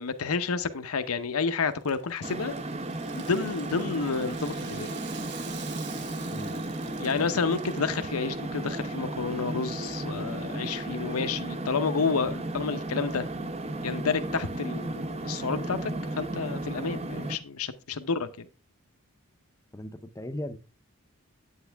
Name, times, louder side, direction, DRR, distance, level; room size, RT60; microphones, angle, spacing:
voice 1, 0.0-2.5 3.1-4.9 7.0-13.3 13.8-18.5, left 5 dB, 75° left, 0.7 m, -30 dB
Rattle (instrument), 1.7-7.9, right 8 dB, 50° right, 1.0 m, -47 dB
sound 1, 2.2-17.4, right 1 dB, 30° right, 0.6 m, -34 dB
voice 2, 6.2-6.6 19.7-20.6, left 1 dB, 15° left, 0.6 m, -37 dB
9.0 x 8.2 x 3.4 m
head